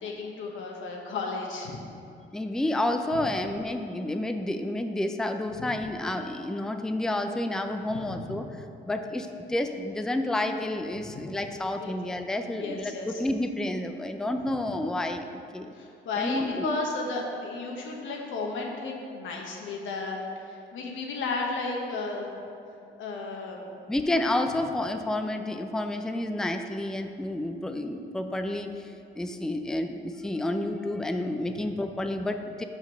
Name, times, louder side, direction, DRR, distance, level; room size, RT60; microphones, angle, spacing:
voice 1, 0.0-1.8 5.5-5.7 8.0-8.3 8.9-9.0 11.1-11.2 11.8-11.9 12.5-13.2 15.7-22.3 23.0-23.7, left 3 dB, 80° left, 0 dB, 1.2 m, -34 dB
voice 2, 2.3-8.5 8.9-15.7 16.2-16.7 23.9-32.6, left 1 dB, 5° left, 7 dB, 0.4 m, -30 dB
5.6 x 5.3 x 6.0 m, 2.5 s
cardioid pair, 90°, 20 cm